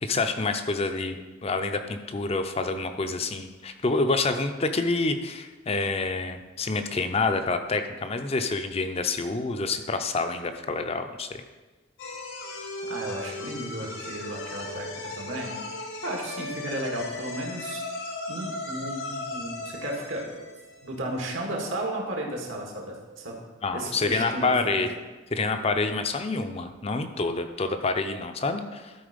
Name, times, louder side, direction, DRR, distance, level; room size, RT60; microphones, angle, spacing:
voice 1, 0.0-1.2 1.4-11.4 23.6-24.9 25.3-28.9, left 3 dB, 30° left, 7 dB, 0.6 m, -27 dB
sound 1, 12.0-21.2, left 2 dB, 80° left, 1.7 m, -36 dB
voice 2, 12.9-17.8 18.3-20.4 20.8-23.3 23.7-24.8, right 1 dB, 75° right, 0 dB, 1.8 m, -34 dB
12.5 x 4.4 x 5.1 m, 1.3 s
head